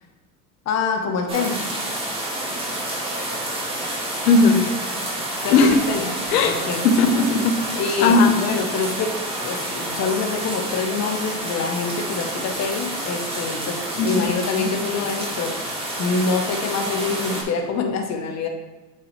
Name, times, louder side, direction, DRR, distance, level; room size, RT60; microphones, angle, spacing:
voice 1, 0.6-1.8 5.4-6.1 6.4-6.8 7.7-9.1 9.4-18.5, left 4 dB, 35° left, 4 dB, 1.2 m, -26 dB
sound 1, 1.3-17.4, right 1 dB, 10° right, 2.3 m, -29 dB
voice 2, 4.3-4.6 5.5-5.8 6.3-6.6 6.8-7.5 8.0-8.3 14.0-14.2 14.5-14.7, left 3 dB, 75° left, 6 dB, 1.0 m, -17 dB
8.7 x 4.5 x 3.3 m, 1.1 s
hypercardioid pair, 90°, 45 cm